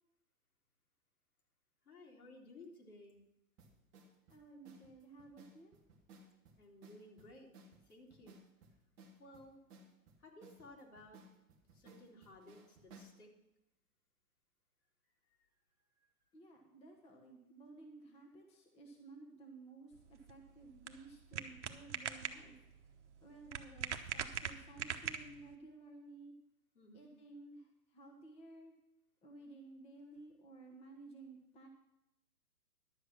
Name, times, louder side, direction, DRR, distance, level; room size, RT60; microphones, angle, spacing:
voice 1, 1.8-3.2 6.6-7.5 7.8-8.4 9.2-9.6 10.2-11.2 11.7-13.3 26.7-27.1, left 1 dB, 70° left, 0 dB, 3.2 m, -57 dB
sound 1, 3.6-13.2, right 2 dB, 10° right, 0.5 m, -61 dB
voice 2, 4.3-5.7 16.3-22.6 23.2-26.3 26.9-28.7 29.2-31.7, right 2 dB, 15° left, 2 dB, 1.1 m, -55 dB
sound 2, 19.9-25.6, right 8 dB, 50° right, 1.0 m, -43 dB
11.5 x 7.7 x 6.1 m, 0.89 s
figure-of-eight pair, 115°, 46 cm